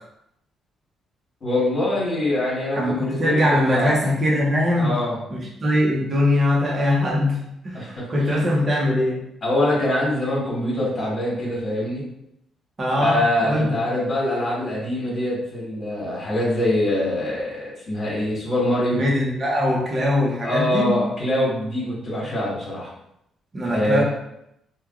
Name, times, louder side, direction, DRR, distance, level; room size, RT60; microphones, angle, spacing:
voice 1, 1.4-4.0 4.7-5.1 7.7-8.5 9.4-12.0 13.0-19.0 20.4-22.9 23.7-24.0, left 1 dB, 45° left, -8 dB, 1.3 m, -24 dB
voice 2, 2.7-5.0 5.3-7.4 7.6-9.2 12.8-13.8 18.9-20.9 23.5-24.0, left 1 dB, 35° right, -3 dB, 0.7 m, -21 dB
3.3 x 2.2 x 2.4 m, 0.80 s
cardioid pair, 90°, 0 cm